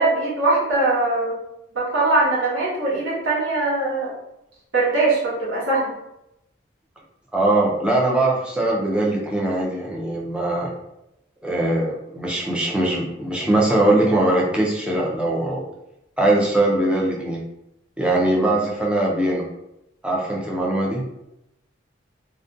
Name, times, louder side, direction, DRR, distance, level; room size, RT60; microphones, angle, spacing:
voice 1, 0.0-1.4 1.7-4.2 4.7-5.9, right 2 dB, 70° right, -6 dB, 0.9 m, -21 dB
voice 2, 7.3-10.7 11.4-15.6 16.2-17.4 18.0-19.4 20.0-21.0, right 1 dB, 5° right, -3 dB, 0.4 m, -21 dB
2.4 x 2.1 x 2.5 m, 0.85 s
head